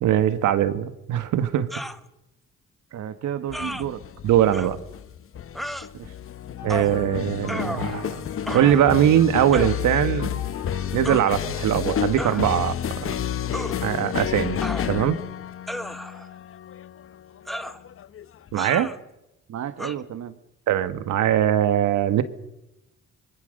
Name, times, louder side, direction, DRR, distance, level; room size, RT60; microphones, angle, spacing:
voice 1, 0.0-1.7 4.2-4.8 6.6-8.2 8.5-10.4 10.9-12.8 13.0-13.1 13.8-14.6 14.9-15.2 18.5-18.9 20.7-22.2, right 11 dB, 80° right, 11 dB, 1.7 m, -21 dB
sound 1, 1.7-2.0 3.5-3.8 4.5-4.7 5.5-5.9 6.7-7.0 7.5-8.1 8.5-8.9 9.5-9.8 11.0-11.3 12.2-12.4 13.5-13.8 14.6-15.2 15.7-16.3 17.5-17.8 18.6-19.0 19.8-20.0, equal, ahead, 1.3 m, -33 dB
voice 2, 2.9-4.0 5.9-6.2 19.5-20.4, right 10 dB, 60° right, 9 dB, 1.4 m, -32 dB
sound 2, 3.5-18.6, left 9 dB, 45° left, 0.8 m, -31 dB
sound 3, 6.6-12.3, left 6 dB, 85° left, 7.6 m, -42 dB
26.0 x 22.5 x 6.6 m, 0.90 s
cardioid pair, 90°, 30 cm